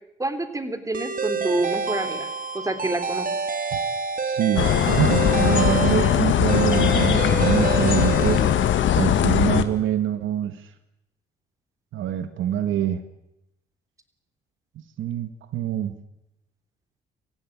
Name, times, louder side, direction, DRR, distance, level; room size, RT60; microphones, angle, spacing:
voice 1, 0.2-2.3 2.5-3.3, right 2 dB, 15° right, 9 dB, 3.2 m, -27 dB
sound 1, 0.9-9.1, right 5 dB, 45° right, 2.4 m, -28 dB
voice 2, 4.2-8.4 8.9-10.7 11.9-13.0 15.0-16.0, right 10 dB, 75° right, 11 dB, 1.6 m, -25 dB
sound 2, 4.6-9.6, left 10 dB, 75° left, 1.6 m, -20 dB
25.5 x 15.5 x 10.0 m, 0.84 s
cardioid pair, 90°, 20 cm